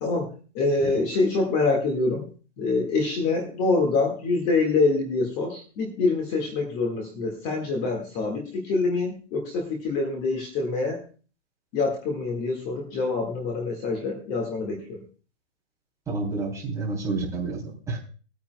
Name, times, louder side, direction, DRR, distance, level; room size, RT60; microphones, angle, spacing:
voice 1, 0.6-2.3 2.6-11.0 11.7-15.0, left 3 dB, 25° left, 2 dB, 1.8 m, -25 dB
voice 2, 16.1-18.0, right 3 dB, 10° right, -4 dB, 3.1 m, -29 dB
20.0 x 9.3 x 2.2 m, 0.37 s
hypercardioid pair, 160°, 36 cm